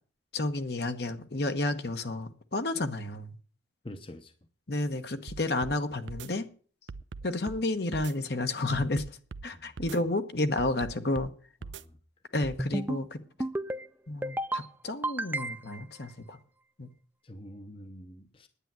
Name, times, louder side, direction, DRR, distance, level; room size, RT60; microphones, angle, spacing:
voice 1, 0.3-3.3 4.7-6.5 7.2-9.2 9.4-11.3 12.3-13.2 14.1-16.4 16.8-16.9, left 2 dB, 60° left, 1.1 m, -31 dB
voice 2, 3.8-4.3 9.5-9.8 11.6-12.0 17.2-18.5, left 1 dB, 30° left, 0.8 m, -46 dB
sound 1, 5.3-5.8 6.1-6.3 6.9-7.6 7.9-8.1 8.7-9.5 9.8-10.0 10.6-11.3 11.6-11.8 12.4-12.6, right 4 dB, 80° right, 0.6 m, -41 dB
sound 2, 12.6-13.0 13.4-13.8 14.2-14.6 15.0-15.8, right 1 dB, 10° right, 0.5 m, -32 dB
10.0 x 9.4 x 7.5 m
head